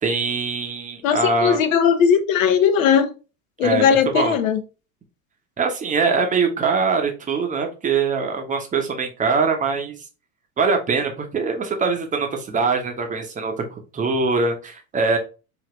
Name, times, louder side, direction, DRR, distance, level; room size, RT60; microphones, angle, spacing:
voice 1, 0.0-1.6 3.6-3.8 4.1-4.3 5.6-10.0 10.6-15.2, right 4 dB, 15° right, 0.9 m, -22 dB
voice 2, 1.0-3.1 3.6-4.6, left 7 dB, 55° left, 0.9 m, -18 dB
5.0 x 2.8 x 3.1 m
figure-of-eight pair, 80°, 46 cm